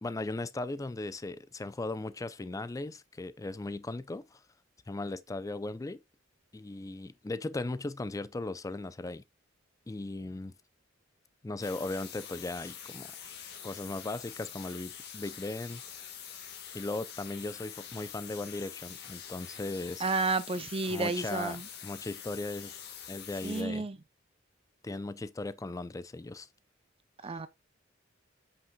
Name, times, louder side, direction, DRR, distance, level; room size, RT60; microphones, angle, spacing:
voice 1, 0.0-4.4 4.9-6.0 6.5-9.2 9.9-10.5 11.4-13.1 13.6-15.8 16.7-20.1 20.9-22.8 23.1-23.9 24.8-26.5 27.2-27.3, left 2 dB, 15° left, 0.4 m, -37 dB
sound 1, 11.6-23.6, left 8 dB, 55° left, 1.5 m, -45 dB
voice 2, 20.0-21.7 23.4-24.0 27.2-27.5, right 3 dB, 30° right, 0.6 m, -31 dB
7.8 x 5.7 x 2.2 m
head